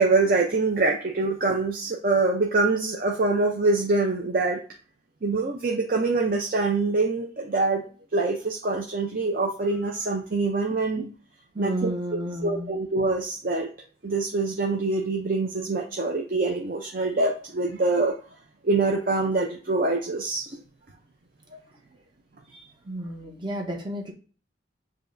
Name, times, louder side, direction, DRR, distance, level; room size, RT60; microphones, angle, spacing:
voice 1, 0.0-4.6 5.2-7.8 8.1-11.1 11.6-11.9 12.4-13.7 14.0-18.2 18.6-20.6 22.5-22.6, right 3 dB, 50° right, 1 dB, 0.6 m, -24 dB
voice 2, 11.5-12.8 22.9-24.1, right 1 dB, 25° right, 0 dB, 0.9 m, -31 dB
6.8 x 2.8 x 2.6 m, 0.38 s
head